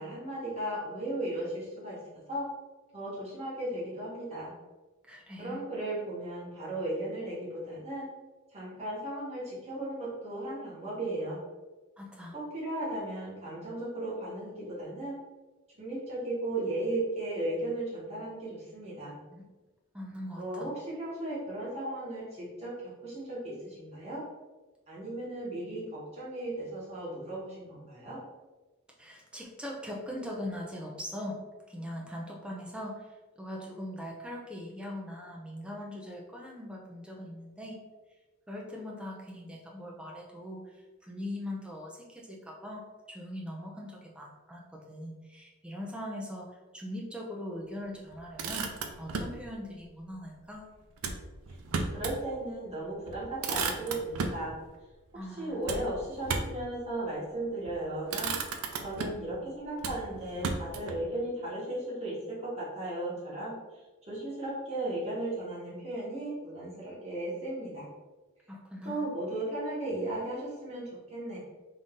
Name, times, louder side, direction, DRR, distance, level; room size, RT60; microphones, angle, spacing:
voice 1, 0.0-2.0 2.3-2.4 2.9-4.5 5.4-8.1 8.5-11.4 12.3-15.2 15.8-19.2 20.4-24.2 24.9-28.2 51.9-54.5 55.4-58.3 58.8-63.6 64.1-67.9 68.8-71.4, right 1 dB, 30° right, -6 dB, 1.2 m, -36 dB
voice 2, 5.1-5.6 12.0-12.4 19.3-19.4 19.9-20.7 29.0-31.4 31.7-37.8 38.5-48.7 49.0-50.7 55.1-55.7 68.5-69.1, left 1 dB, 5° right, -2 dB, 0.5 m, -41 dB
Motor vehicle (road), 48.1-49.4 51.0-52.2 52.6-52.7 53.0-54.4 55.7-56.7 57.5-57.8 58.1-59.3 59.8-61.0, right 4 dB, 85° right, 0.5 m, -34 dB
3.8 x 2.6 x 3.6 m, 1.2 s
head